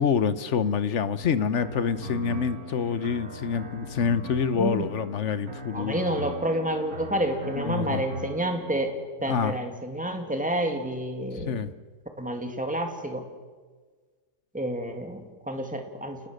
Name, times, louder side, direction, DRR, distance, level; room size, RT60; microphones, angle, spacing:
voice 1, 0.0-6.1 7.5-8.0 9.3-9.5 11.3-11.7, left 6 dB, 50° left, 14 dB, 1.1 m, -26 dB
sound 1, 1.2-8.7, right 1 dB, 65° right, 2.3 m, -40 dB
voice 2, 4.5-4.9 5.7-8.9 9.2-11.6 12.2-13.2 14.5-16.3, right 1 dB, 5° right, 4 dB, 2.3 m, -29 dB
29.0 x 19.5 x 6.5 m, 1.4 s
omnidirectional pair, 1.7 m